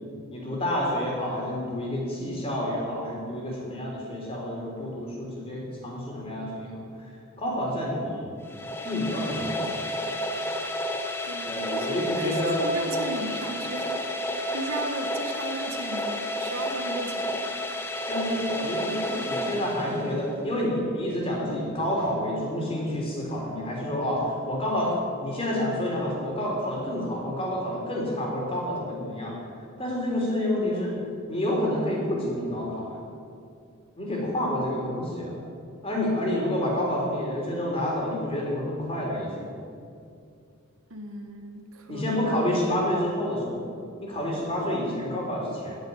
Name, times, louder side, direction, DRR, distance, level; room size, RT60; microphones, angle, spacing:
voice 1, 0.3-6.8 7.4-8.3 8.8-9.7 11.4-12.7 18.1-29.4 29.8-30.9 31.3-33.0 34.0-35.4 35.8-39.5 41.9-43.7 44.0-45.8, left 1 dB, 25° left, -3 dB, 3.4 m, -29 dB
sound 1, 8.4-20.4, left 1 dB, 10° left, 0.9 m, -31 dB
voice 2, 11.2-14.0 14.2-17.4 40.9-42.0, right 2 dB, 75° right, 4 dB, 1.3 m, -36 dB
9.5 x 9.5 x 9.4 m, 2.4 s
head